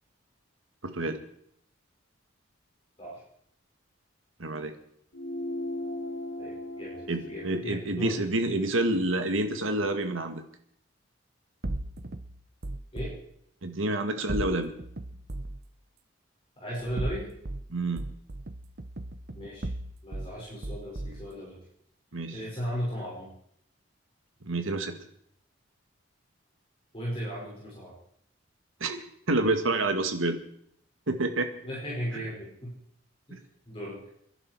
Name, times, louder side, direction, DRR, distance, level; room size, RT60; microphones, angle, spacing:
voice 1, 0.8-1.2 4.4-4.7 7.1-10.4 13.6-14.7 17.7-18.1 22.1-22.4 24.4-25.0 28.8-30.4 31.1-31.5 33.3-33.4, right 2 dB, 75° right, 7 dB, 1.9 m, -28 dB
sound 1, 5.1-9.9, left 1 dB, 75° left, 1.7 m, -39 dB
voice 2, 6.4-8.1 12.9-13.2 16.6-17.3 19.3-19.7 20.0-21.6 22.3-23.3 26.9-28.0 31.6-32.8 33.3-34.0, equal, 25° left, -6 dB, 5.9 m, -36 dB
sound 2, 11.6-13.1 14.3-15.6 16.8-17.6 18.0-20.3 20.6-21.3, right 1 dB, 50° right, 0.8 m, -36 dB
27.0 x 11.0 x 4.7 m, 0.69 s
head